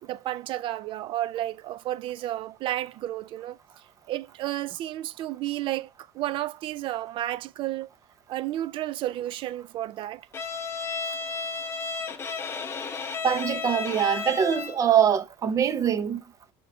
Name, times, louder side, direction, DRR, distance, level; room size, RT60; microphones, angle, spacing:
voice 1, 0.0-3.6 4.1-7.9 8.3-10.3, right 14 dB, 45° right, 0.4 m, -32 dB
Bowed string instrument, 10.3-14.9, left 5 dB, 20° left, 0.9 m, -33 dB
voice 2, 13.2-16.2, right 8 dB, 25° right, 0.8 m, -23 dB
10.5 x 3.8 x 4.9 m
cardioid pair, 160°, 12 cm